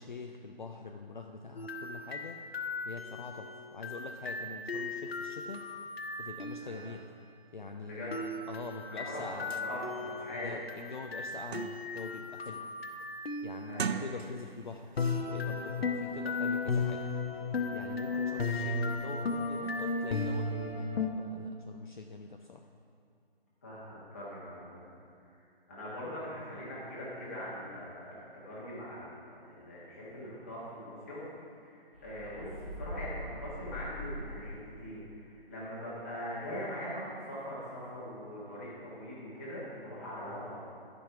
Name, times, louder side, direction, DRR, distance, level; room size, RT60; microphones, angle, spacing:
voice 1, 0.0-2.4 2.8-5.6 6.2-7.1 7.5-9.5 10.0-12.6 13.4-17.0 17.7-20.9 21.2-22.7, left 4 dB, 50° left, 3 dB, 0.5 m, -44 dB
sound 1, 1.6-6.8 8.1-13.9 15.0-21.1, left 3 dB, 75° left, 0.9 m, -35 dB
voice 2, 8.9-10.5 13.7-13.9 18.1-18.2 23.6-24.8 25.2-25.3 25.7-31.3 31.6-32.5 32.8-40.6, equal, 15° left, -8 dB, 1.3 m, -42 dB
sound 2, 9.2-9.3 9.5-9.7 10.2-10.3 10.7-12.1 12.5-12.8 13.6-14.6 15.0-15.2, right 6 dB, 85° right, 0.5 m, -39 dB
sound 3, 31.9-34.7, equal, 10° right, 0.9 m, -42 dB
12.0 x 5.4 x 5.8 m, 2.4 s
hypercardioid pair, 180°, 31 cm